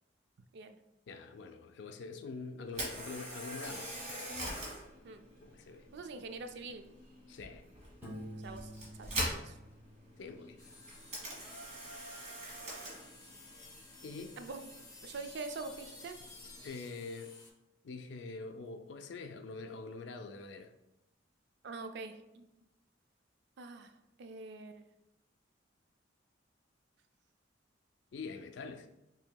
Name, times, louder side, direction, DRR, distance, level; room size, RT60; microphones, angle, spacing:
voice 1, 1.1-3.9 5.4-5.8 7.3-7.6 10.2-10.6 14.0-14.4 16.6-17.4 17.8-20.7 28.1-28.9, left 4 dB, 65° left, 7 dB, 0.4 m, -45 dB
Camera, 2.7-16.7, right 1 dB, 40° right, 1.4 m, -44 dB
voice 2, 5.9-6.9 8.4-8.7 9.0-9.6 14.4-14.7 15.0-16.2 21.6-22.5 23.6-23.9 24.2-24.9, right 3 dB, 65° right, 8 dB, 0.4 m, -44 dB
Piano, 8.0-10.8, equal, 10° right, 0.9 m, -49 dB
sound 1, 10.6-17.5, left 3 dB, 20° left, 0.7 m, -54 dB
5.6 x 2.8 x 2.2 m, 0.92 s
head